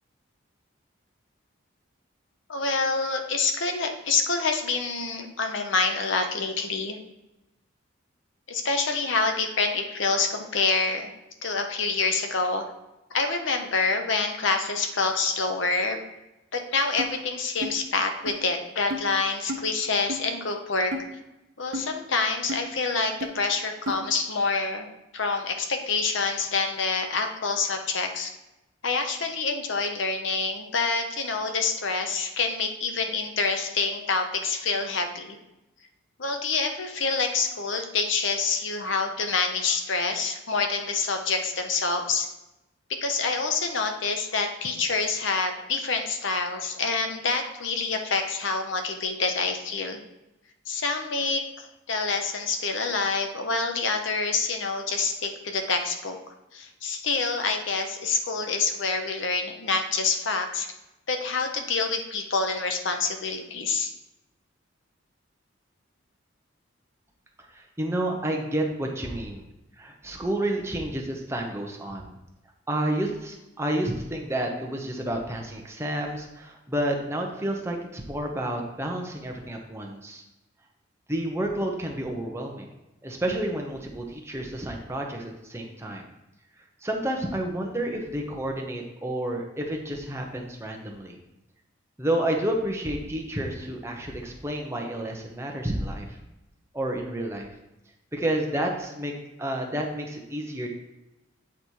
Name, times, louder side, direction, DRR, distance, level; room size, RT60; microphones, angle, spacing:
voice 1, 2.5-7.0 8.5-11.1 11.4-12.6 13.1-16.0 16.5-20.9 21.6-24.9 25.1-28.3 28.8-35.4 36.2-42.3 42.9-50.0 50.7-56.2 56.5-60.7 61.1-63.9, left 4 dB, 65° left, 5 dB, 0.8 m, -27 dB
sound 1, 17.0-17.1 17.6-17.8 18.3-18.4 18.9-19.0 19.5-19.6 20.1-20.2 20.9-21.1 21.7-21.9 22.5-22.6 23.2-23.3 23.9-24.0, equal, 75° right, 0.9 m, -31 dB
voice 2, 67.5-69.5 69.8-72.1 72.7-80.2 81.1-82.7 83.0-86.0 86.8-91.2 92.0-96.2 96.7-97.5 98.1-99.1 99.4-100.7, right 1 dB, 15° right, 1 dB, 0.8 m, -30 dB
8.4 x 4.2 x 4.6 m, 0.96 s
head